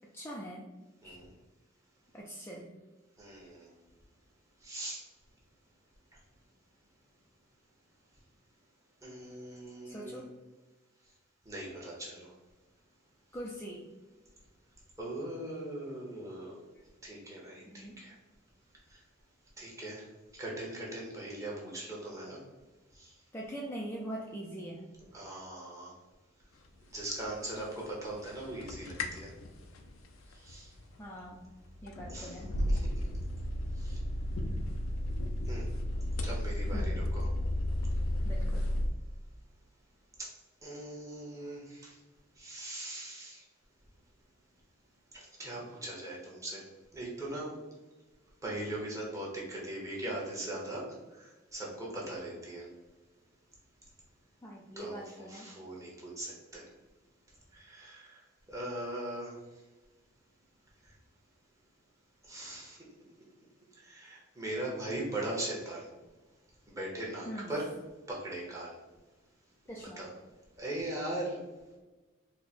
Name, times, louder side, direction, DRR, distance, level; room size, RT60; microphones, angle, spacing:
voice 1, 0.1-0.6 1.0-1.1 2.1-2.7 9.8-10.3 13.3-13.8 17.7-18.0 23.3-24.9 31.0-31.4 31.8-32.5 36.7-36.9 38.2-38.6 54.4-55.5 67.3-67.5 69.7-70.0, right 1 dB, 10° left, -3 dB, 0.4 m, -42 dB
voice 2, 3.2-3.7 4.6-5.0 9.0-10.2 11.4-12.3 15.0-16.6 17.0-18.1 19.6-20.0 20.4-22.4 23.0-23.1 25.1-25.9 26.9-29.3 30.4-30.7 32.1-32.4 32.7-32.8 33.8-34.0 35.5-35.7 36.2-37.3 40.6-41.9 42.4-43.4 45.1-46.6 46.9-47.5 48.4-50.8 51.2-52.7 54.8-56.6 57.5-58.2 58.5-59.4 62.3-62.8 63.8-65.9 66.8-67.7 68.1-68.7 70.0-70.1 70.6-71.4, right 1 dB, 15° right, -4 dB, 1.1 m, -40 dB
sound 1, 27.2-27.8 28.1-38.9, left 1 dB, 85° left, 0.5 m, -33 dB
4.2 x 2.2 x 4.2 m, 1.2 s
head